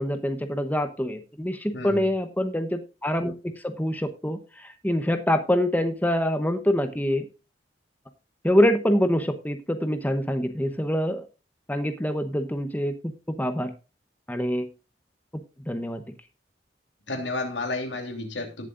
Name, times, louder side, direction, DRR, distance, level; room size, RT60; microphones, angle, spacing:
voice 1, 0.0-7.2 8.4-11.2 11.7-12.9 13.3-13.7 14.3-14.7 15.7-16.0, equal, 10° left, 8 dB, 0.9 m, -25 dB
voice 2, 1.7-2.1 17.1-18.7, left 2 dB, 75° left, 5 dB, 3.1 m, -31 dB
18.5 x 7.6 x 2.6 m, 0.32 s
head